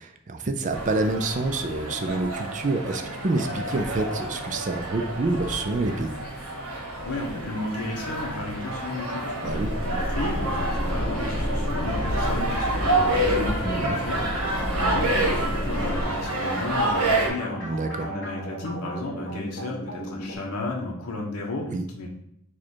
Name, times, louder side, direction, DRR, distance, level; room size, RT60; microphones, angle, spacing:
voice 1, 0.0-6.1 9.4-9.7 13.6-14.0 17.6-18.1 21.7-21.8, right 2 dB, 35° right, 6 dB, 0.4 m, -27 dB
sound 1, 0.7-17.3, right 1 dB, 75° right, 1.5 m, -29 dB
voice 2, 7.0-22.1, left 2 dB, 85° left, 0 dB, 1.0 m, -33 dB
sound 2, 9.5-16.0, equal, 25° left, 0.9 m, -29 dB
sound 3, 15.2-20.4, right 1 dB, 55° left, 1.4 m, -37 dB
4.8 x 2.4 x 4.4 m, 0.73 s
head